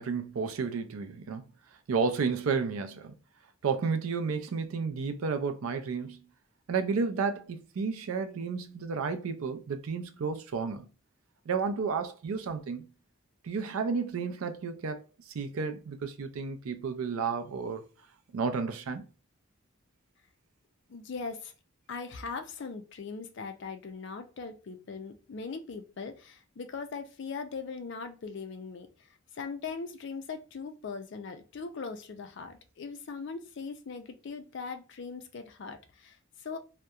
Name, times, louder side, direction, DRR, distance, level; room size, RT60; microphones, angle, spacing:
voice 1, 0.0-1.4 1.9-3.1 3.6-6.2 6.7-10.9 11.5-12.9 13.4-15.0 15.3-17.8 18.3-19.1, right 5 dB, 75° right, 0.4 m, -32 dB
voice 2, 20.9-21.5 21.9-28.9 29.3-36.6, left 4 dB, 55° left, 0.4 m, -40 dB
2.7 x 2.1 x 2.3 m
head